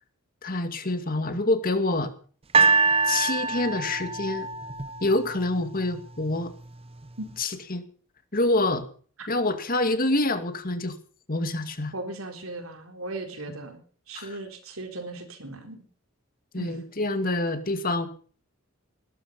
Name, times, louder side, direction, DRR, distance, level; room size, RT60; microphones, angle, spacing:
voice 1, 0.4-2.1 3.0-4.5 5.0-6.5 7.4-7.8 8.3-8.9 9.3-10.9 11.3-11.9 14.1-14.4 16.5-18.1, left 2 dB, 40° left, 8 dB, 2.3 m, -26 dB
sound 1, 2.5-5.7 6.5-6.6, right 4 dB, 25° right, 0.7 m, -24 dB
voice 2, 11.9-13.8 14.1-15.8 16.6-16.8, right 2 dB, 75° right, 5 dB, 4.1 m, -37 dB
20.0 x 13.0 x 5.6 m, 0.44 s
head